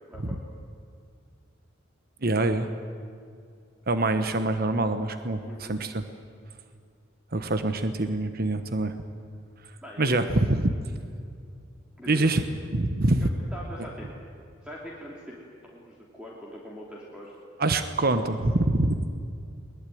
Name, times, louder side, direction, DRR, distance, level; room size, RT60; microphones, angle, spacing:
voice 1, 2.2-2.6 3.9-6.1 7.3-8.9 10.0-10.7 12.1-12.4 12.7-13.3 17.6-19.0, right 2 dB, 50° right, 9 dB, 1.2 m, -25 dB
voice 2, 5.4-5.8 9.8-10.1 12.0-12.3 13.2-14.1 14.6-15.4 15.6-17.3, equal, 5° right, -4 dB, 3.1 m, -42 dB
22.0 x 21.0 x 9.4 m, 2.4 s
head